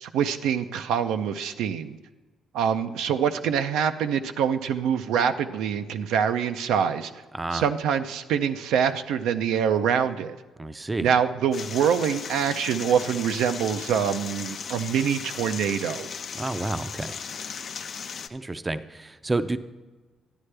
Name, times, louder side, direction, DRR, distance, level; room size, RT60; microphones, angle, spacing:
voice 1, 0.0-2.0 2.5-7.1 7.5-10.4 11.0-16.1, right 8 dB, 90° right, 8 dB, 0.4 m, -25 dB
voice 2, 7.3-7.7 10.6-11.1 16.3-17.2 18.3-19.6, right 2 dB, 20° right, 12 dB, 0.4 m, -30 dB
sound 1, 11.5-18.3, left 6 dB, 55° left, 0.5 m, -36 dB
11.5 x 9.6 x 3.3 m, 1.2 s
cardioid pair, 90°, 0 cm